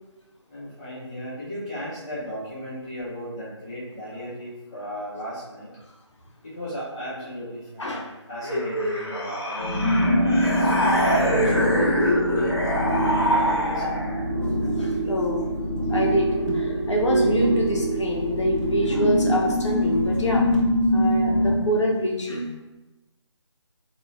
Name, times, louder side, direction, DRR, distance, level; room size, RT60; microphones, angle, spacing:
voice 1, 0.5-5.7 6.4-7.9 8.3-10.5 10.7-12.5 13.0-14.0, equal, 15° left, -10 dB, 0.5 m, -35 dB
sound 1, 8.4-14.3, equal, 55° left, 0.9 m, -24 dB
sound 2, 9.6-21.6, equal, 15° right, 0.8 m, -24 dB
voice 2, 14.8-20.4 20.9-22.5, equal, 70° left, -1 dB, 0.5 m, -25 dB
sound 3, 16.5-16.8 17.7-18.9 20.5-20.8, equal, 80° right, 0.8 m, -37 dB
3.8 x 2.1 x 2.3 m, 1.1 s
figure-of-eight pair, 155°, 15 cm